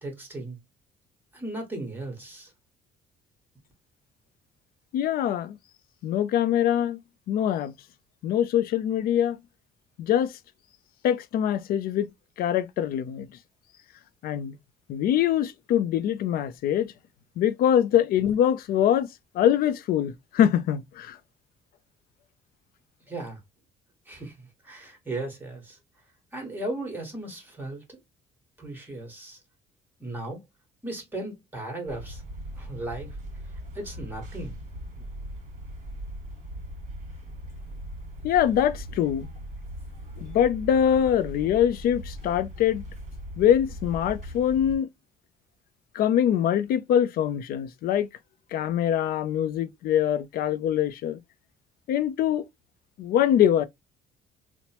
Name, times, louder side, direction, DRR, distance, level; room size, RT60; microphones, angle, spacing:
voice 1, 0.0-0.6 1.3-2.5 23.1-23.4 24.1-25.8 26.3-28.0 28.6-29.4 30.0-30.4 30.8-32.2 32.6-33.1 33.7-34.5, right 2 dB, 10° right, 1.4 m, -36 dB
voice 2, 4.9-5.6 6.0-7.0 7.3-7.7 8.2-9.4 10.0-10.3 11.0-12.1 12.4-13.3 14.2-14.6 14.9-16.9 17.4-19.1 19.3-21.2 38.2-39.3 40.2-42.8 43.4-44.9 45.9-48.1 48.5-51.2 51.9-52.4 53.0-53.6, left 10 dB, 60° left, 0.4 m, -23 dB
sound 1, 31.9-44.8, equal, 45° right, 1.4 m, -39 dB
2.9 x 2.1 x 2.9 m
cardioid pair, 110°, 17 cm